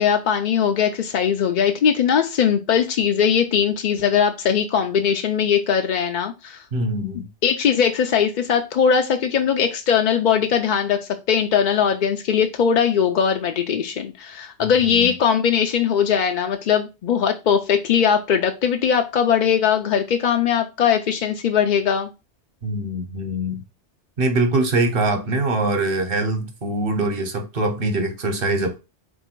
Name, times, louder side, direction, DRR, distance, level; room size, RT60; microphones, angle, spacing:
voice 1, 0.0-6.6 7.4-11.0 11.3-22.1, left 7 dB, 60° left, 0.5 m, -20 dB
voice 2, 6.7-7.3 14.6-15.1 22.6-23.6 24.2-28.8, right 2 dB, 55° right, 1.1 m, -23 dB
4.0 x 2.7 x 4.4 m
omnidirectional pair, 1.2 m